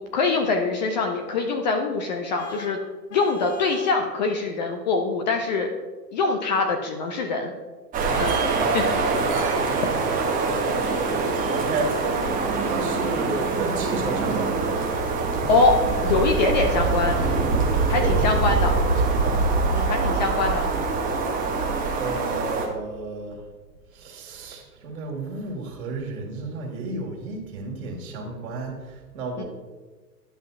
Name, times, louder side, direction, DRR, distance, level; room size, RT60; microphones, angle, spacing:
voice 1, 0.1-2.8 3.1-5.7 6.1-7.5 8.2-8.3 8.7-8.9 15.5-15.8 16.0-17.2 17.9-18.8 19.7-20.9 29.4-29.5, left 3 dB, 30° left, 4 dB, 0.5 m, -23 dB
Vehicle horn car horn honking, 2.4-4.1, left 1 dB, 45° left, 1.2 m, -39 dB
sound 1, 7.9-22.7, right 3 dB, 15° right, 0.9 m, -24 dB
voice 2, 8.6-11.9 12.6-14.7 18.0-19.5 22.0-23.4 23.9-29.4, right 3 dB, 55° right, 0 dB, 2.1 m, -33 dB
11.0 x 5.5 x 2.5 m, 1.3 s
hypercardioid pair, 115°, 49 cm